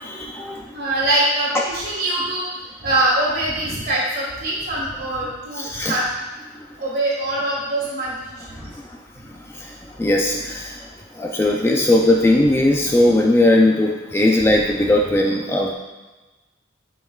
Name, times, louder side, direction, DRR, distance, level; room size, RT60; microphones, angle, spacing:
voice 1, 0.1-0.6 5.6-6.0 10.0-10.8 11.2-15.7, left 1 dB, 15° left, -1 dB, 0.4 m, -18 dB
voice 2, 0.7-2.5 2.8-6.0 6.8-8.1, right 1 dB, 50° right, -4 dB, 1.8 m, -23 dB
7.6 x 5.3 x 2.4 m, 1.1 s
head